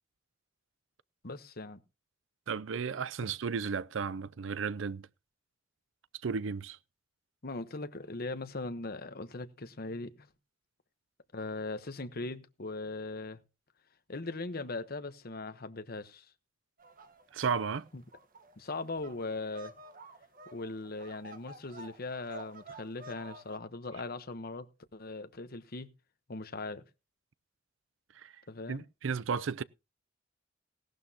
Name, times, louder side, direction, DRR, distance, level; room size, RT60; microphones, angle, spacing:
voice 1, 1.2-1.8 7.4-10.3 11.3-13.4 14.1-16.3 17.9-18.0 18.6-19.7 20.5-24.7 24.9-25.9 26.3-26.8 28.5-28.8, left 3 dB, 55° left, 1.1 m, -39 dB
voice 2, 2.5-5.1 6.2-6.8 17.3-17.9 28.2-28.3 28.7-29.6, right 5 dB, 80° right, 0.5 m, -34 dB
sound 1, 16.8-23.6, right 2 dB, 45° right, 1.3 m, -51 dB
17.5 x 12.0 x 2.9 m
head